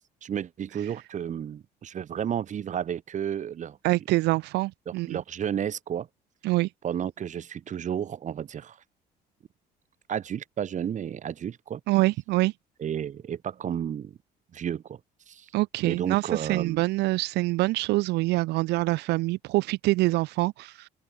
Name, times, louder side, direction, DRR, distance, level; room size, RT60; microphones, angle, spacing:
voice 1, 0.2-3.8 4.9-6.1 6.8-8.8 10.1-11.8 12.8-14.2 14.5-15.0 15.3-15.5 15.8-16.8, right 9 dB, 45° right, 1.9 m, -32 dB
voice 2, 3.8-5.2 6.4-6.7 11.9-12.5 15.5-20.9, right 20 dB, 85° right, 0.8 m, -25 dB
open air
cardioid pair, 110°, 17 cm